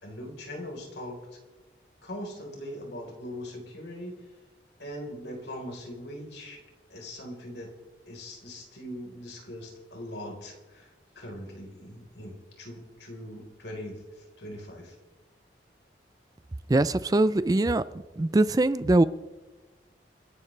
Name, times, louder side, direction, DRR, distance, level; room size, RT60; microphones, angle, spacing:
voice 1, 0.0-1.2 2.0-4.2 4.8-6.6 6.9-7.7 8.1-15.0, equal, 70° left, 1 dB, 4.2 m, -41 dB
voice 2, 16.7-17.8 18.2-19.0, right 2 dB, 20° right, 15 dB, 0.4 m, -22 dB
27.5 x 11.5 x 3.3 m, 1.2 s
head